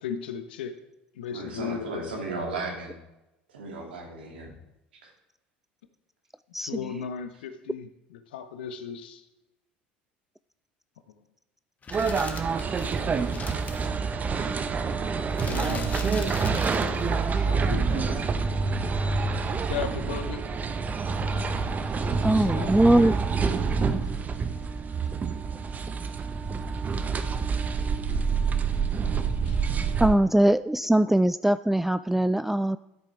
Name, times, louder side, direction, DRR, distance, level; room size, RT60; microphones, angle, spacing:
voice 1, 0.0-0.7 1.1-2.3 6.6-9.2 13.1-13.7 15.4-18.2 19.5-20.4 22.0-23.2 29.2-29.6 30.1-30.5 30.8-31.2, left 7 dB, 75° left, 9 dB, 1.1 m, -37 dB
voice 2, 1.3-3.0 3.5-4.5 5.0-5.1, right 2 dB, 80° right, -1 dB, 3.0 m, -35 dB
sound 1, 11.8-13.9 15.3-17.1 18.1-18.2, left 4 dB, 30° left, 1.5 m, -41 dB
sound 2, 11.9-30.2, right 5 dB, 30° right, 0.9 m, -27 dB
voice 3, 22.2-23.1 30.0-32.8, right 1 dB, 5° right, 14 dB, 0.3 m, -21 dB
13.5 x 8.3 x 3.5 m, 0.93 s
hypercardioid pair, 70°, 5 cm